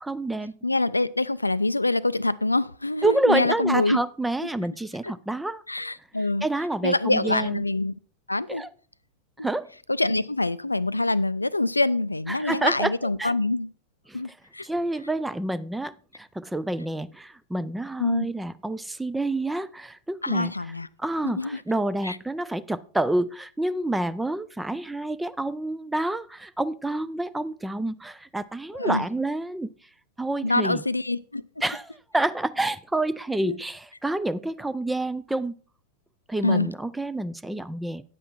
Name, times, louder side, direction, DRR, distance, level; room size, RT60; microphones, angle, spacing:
voice 1, 0.0-0.5 3.0-5.6 6.4-7.6 8.5-8.7 9.4-9.7 12.3-12.9 13.2-13.3 14.1-14.2 14.6-20.5 21.0-29.7 30.2-30.8 31.6-35.6 36.3-38.0, right 2 dB, 5° right, 0.4 m, -28 dB
voice 2, 0.6-4.0 5.0-5.1 5.7-6.5 6.8-7.9 8.3-8.6 9.4-9.5 9.9-13.7 14.1-14.7 18.0-18.3 20.2-20.9 21.2-21.6 22.0-22.2 28.7-29.0 30.4-31.4 33.4-33.6 36.4-36.7, left 2 dB, 85° left, 0.4 m, -25 dB
9.9 x 7.7 x 4.4 m
figure-of-eight pair, 90°, 0 cm